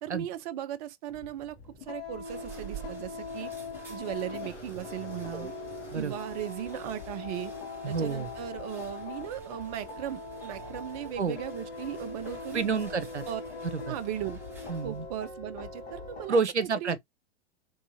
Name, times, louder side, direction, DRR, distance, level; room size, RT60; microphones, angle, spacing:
voice 1, 0.0-3.5 3.9-5.5 5.9-7.5 7.9-12.8 13.3-13.4 13.9-14.4 14.8-17.0, right 11 dB, 35° right, 0.4 m, -37 dB
sound 1, 1.1-16.3, left 3 dB, 65° left, 1.7 m, -41 dB
sound 2, 1.6-15.1, right 5 dB, 5° right, 1.0 m, -50 dB
Sliding door, 2.4-7.4, left 5 dB, 85° left, 1.2 m, -52 dB
voice 2, 7.8-8.3 11.2-11.4 12.5-13.2 13.6-13.9 14.7-15.1 16.3-17.0, right 5 dB, 90° right, 0.6 m, -29 dB
3.5 x 3.1 x 2.7 m
figure-of-eight pair, 100°, 34 cm